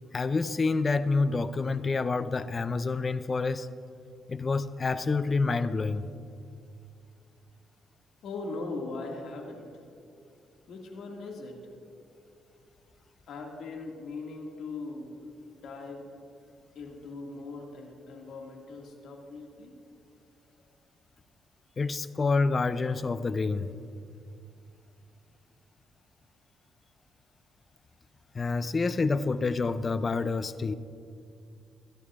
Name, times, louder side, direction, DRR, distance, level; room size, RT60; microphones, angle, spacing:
voice 1, 0.1-3.7 4.3-6.1 21.8-23.7 28.3-30.7, left 4 dB, 35° left, 14 dB, 0.4 m, -28 dB
voice 2, 8.2-9.8 10.7-11.7 13.3-15.2 15.5-16.1 16.8-19.8, left 3 dB, 75° left, 0 dB, 2.0 m, -40 dB
21.0 x 11.0 x 2.5 m, 2.4 s
cardioid pair, 90°, 0 cm